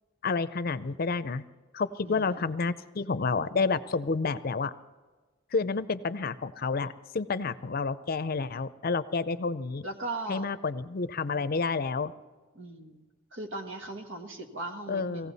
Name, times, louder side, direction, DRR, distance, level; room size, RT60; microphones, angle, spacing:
voice 1, 0.2-1.4 1.7-4.7 5.5-9.9 10.3-12.1 14.9-15.3, left 4 dB, 50° left, 13 dB, 0.6 m, -30 dB
voice 2, 2.0-2.5 9.8-10.5 12.5-13.1 13.3-15.3, right 2 dB, 75° right, 4 dB, 1.6 m, -38 dB
18.5 x 16.0 x 4.1 m, 1.3 s
head